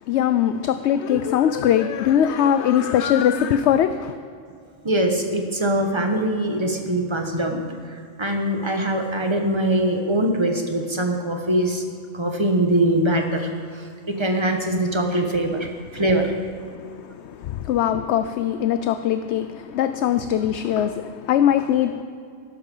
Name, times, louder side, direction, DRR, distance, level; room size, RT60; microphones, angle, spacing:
voice 1, 0.1-4.2 16.7-22.0, left 10 dB, 70° left, 0.8 m, -21 dB
voice 2, 4.8-7.6 7.9-11.8 12.1-15.7 15.9-16.3, right 1 dB, 25° right, 1.3 m, -22 dB
13.5 x 12.5 x 5.5 m
omnidirectional pair, 1.3 m